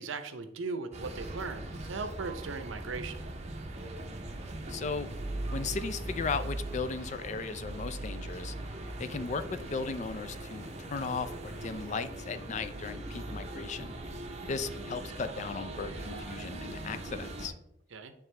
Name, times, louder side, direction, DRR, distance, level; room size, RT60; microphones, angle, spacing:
voice 1, 0.0-3.2 17.9-18.1, right 4 dB, 80° right, 9 dB, 0.6 m, -38 dB
sound 1, 0.9-17.5, right 1 dB, 35° right, 0.6 m, -40 dB
voice 2, 4.7-5.1 5.5-8.5 9.0-13.9 14.5-17.5, left 4 dB, 35° left, 11 dB, 0.3 m, -36 dB
8.9 x 3.5 x 3.3 m, 0.79 s
head